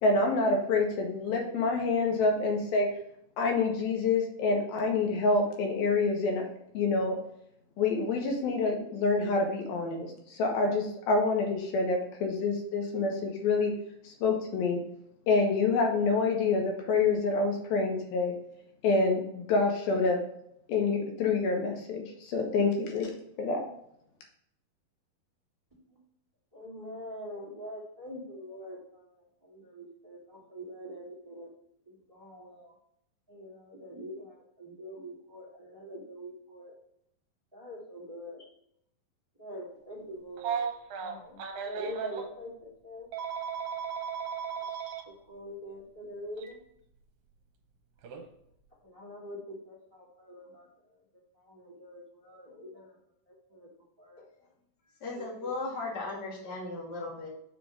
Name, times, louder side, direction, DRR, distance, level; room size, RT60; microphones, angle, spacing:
voice 1, 0.0-2.9 3.4-6.5 6.7-7.2 7.8-13.7 14.0-14.8 15.3-18.3 18.8-20.2 20.7-23.1 23.4-23.6, left 3 dB, 80° left, 1 dB, 3.0 m, -27 dB
voice 2, 26.5-31.5 31.9-32.7 33.3-36.7 37.5-38.5 39.4-40.6 41.0-43.1 45.0-46.6 48.8-50.7 51.4-52.9 53.5-53.7 54.0-54.3 55.1-55.5, equal, 10° right, -6 dB, 1.7 m, -44 dB
Telephone, 40.4-42.3 43.1-45.0 46.4-46.5 48.0-48.2, right 7 dB, 75° right, 2.5 m, -35 dB
voice 3, 55.0-57.3, left 3 dB, 35° left, -3 dB, 1.9 m, -36 dB
6.9 x 3.7 x 6.3 m, 0.73 s
omnidirectional pair, 4.2 m